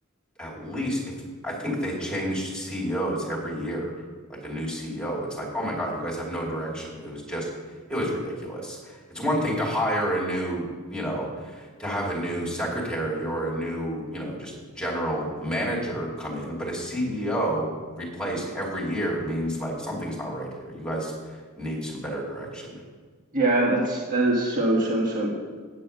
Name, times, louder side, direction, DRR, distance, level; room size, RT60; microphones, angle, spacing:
voice 1, 0.4-1.0 1.4-3.9 4.4-7.5 7.9-17.7 18.0-21.1 21.6-22.8, equal, 5° left, -4 dB, 2.7 m, -29 dB
voice 2, 23.3-25.3, right 2 dB, 40° right, -4 dB, 1.7 m, -23 dB
8.6 x 7.5 x 6.7 m, 1.5 s
head